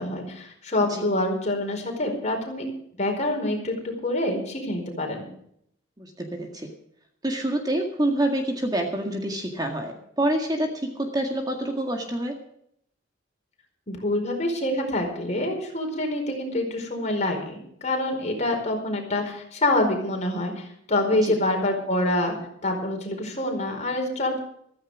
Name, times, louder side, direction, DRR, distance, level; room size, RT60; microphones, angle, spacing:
voice 1, 0.0-2.7 3.0-5.3 13.9-22.3 22.6-24.4, left 1 dB, 40° left, 2 dB, 4.8 m, -26 dB
voice 2, 6.0-6.7 7.2-12.4 21.2-21.3, right 1 dB, 20° right, 3 dB, 1.9 m, -27 dB
15.0 x 14.5 x 5.0 m, 0.69 s
head